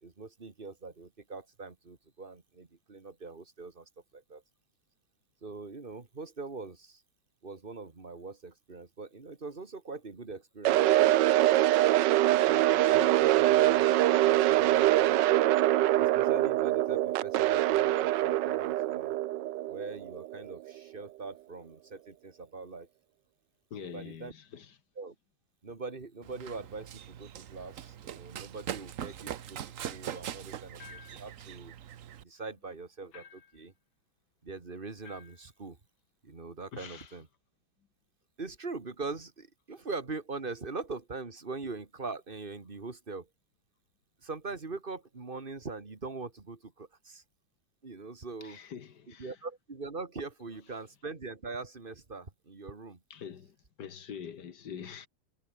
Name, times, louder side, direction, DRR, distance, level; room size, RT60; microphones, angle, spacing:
voice 1, 0.0-4.4 5.4-7.0 7.4-11.2 12.3-13.9 14.2-15.2 16.0-19.2 19.7-22.9 23.8-24.3 25.0-25.2 25.6-31.8 32.2-33.7 34.4-35.8 36.2-37.3 38.4-43.3 44.2-47.2 47.8-48.6 49.1-53.0, right 3 dB, 25° right, 2.3 m, -42 dB
sound 1, 10.6-20.7, right 14 dB, 70° right, 1.2 m, -24 dB
voice 2, 23.7-24.8 36.7-37.1 48.4-49.3 53.1-55.1, left 8 dB, 60° left, 2.0 m, -45 dB
Run, 26.2-32.2, right 10 dB, 55° right, 1.0 m, -42 dB
sound 2, 30.8-31.3 33.1-33.6 35.0-35.5, left 7 dB, 80° left, 2.7 m, -52 dB
omnidirectional pair, 2.1 m